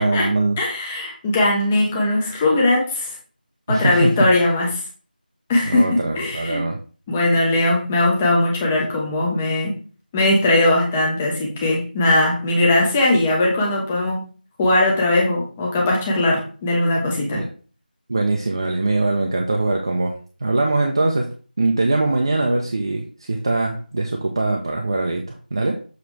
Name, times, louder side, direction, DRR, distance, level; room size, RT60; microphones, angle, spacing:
voice 1, 0.0-0.6 3.7-4.3 5.6-6.8 17.3-17.5 18.1-21.3 21.6-25.8, right 2 dB, 30° right, 2 dB, 0.6 m, -22 dB
voice 2, 0.6-3.2 3.7-4.8 5.5-6.6 7.1-9.7 10.1-14.2 14.6-17.4, left 2 dB, 10° left, -2 dB, 0.7 m, -19 dB
7.1 x 3.0 x 4.8 m, 0.39 s
figure-of-eight pair, 175°, 5 cm